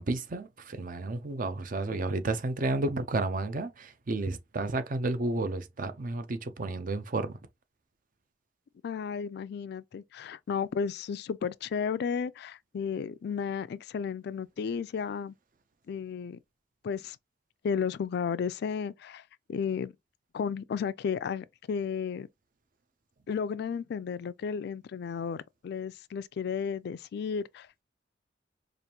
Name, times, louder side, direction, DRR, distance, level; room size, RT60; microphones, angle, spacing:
voice 1, 0.0-7.3, right 2 dB, 50° right, 0.6 m, -31 dB
voice 2, 8.8-15.3 15.9-16.4 16.8-17.2 17.6-19.2 19.5-19.9 20.3-22.3 23.3-27.7, left 6 dB, 65° left, 0.3 m, -33 dB
5.0 x 2.5 x 2.8 m
head